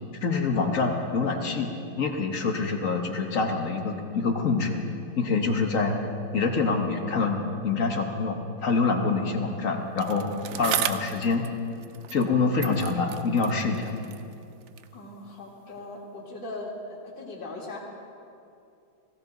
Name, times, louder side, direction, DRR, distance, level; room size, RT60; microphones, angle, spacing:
voice 1, 0.2-1.7 2.0-4.8 5.2-5.9 6.3-10.3 10.6-11.5 12.1-14.0, left 4 dB, 50° left, 3 dB, 1.3 m, -26 dB
Bicycle, 10.0-12.3 12.6-15.0 15.8-15.9, right 10 dB, 80° right, 0.7 m, -35 dB
voice 2, 14.9-16.7 17.0-17.8, left 2 dB, 85° left, -6 dB, 2.5 m, -39 dB
17.0 x 16.0 x 3.9 m, 2.6 s
omnidirectional pair, 2.0 m